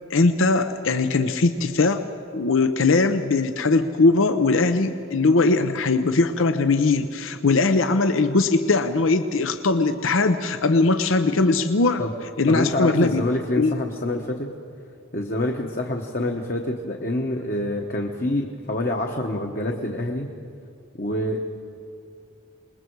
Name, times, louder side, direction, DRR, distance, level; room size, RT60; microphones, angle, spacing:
voice 1, 0.1-2.0 2.3-12.0 12.4-13.2 13.6-13.8, left 3 dB, 80° left, 8 dB, 0.7 m, -20 dB
voice 2, 12.5-14.5 15.1-20.3 21.0-21.4, left 1 dB, 45° left, 1 dB, 1.1 m, -26 dB
27.0 x 20.5 x 4.7 m, 2.5 s
head